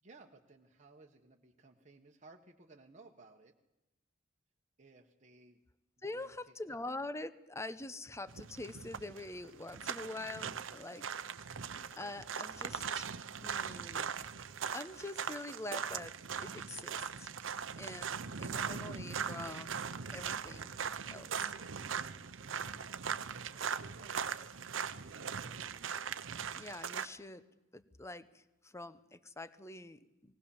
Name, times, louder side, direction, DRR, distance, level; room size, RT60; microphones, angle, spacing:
voice 1, 0.0-3.5 4.8-5.6 6.0-6.8 23.4-24.5, right 3 dB, 40° right, 1 dB, 1.3 m, -60 dB
voice 2, 6.0-11.2 11.9-13.1 13.4-14.1 14.7-17.3 17.7-19.9 20.1-20.7 21.1-21.3 26.5-27.4 27.7-30.3, left 2 dB, 15° left, 14 dB, 0.8 m, -45 dB
sound 1, 8.3-27.1, right 7 dB, 75° right, 0.8 m, -40 dB
19.0 x 19.0 x 7.2 m, 0.96 s
head